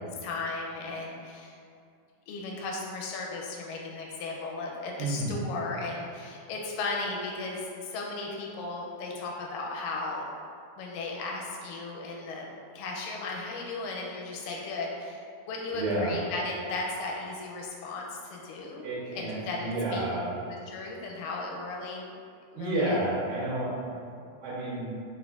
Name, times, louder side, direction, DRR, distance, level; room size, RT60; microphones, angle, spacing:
voice 1, 0.2-1.6 2.3-10.3 10.8-15.2 15.5-18.9 19.2-20.0 20.7-22.1 22.5-23.0, left 3 dB, 85° left, -1 dB, 2.1 m, -36 dB
voice 2, 5.0-5.4 15.7-16.2 18.8-20.3 22.6-24.9, right 1 dB, 80° right, -8 dB, 2.3 m, -31 dB
5.0 x 2.3 x 2.3 m, 2.4 s
omnidirectional pair, 3.7 m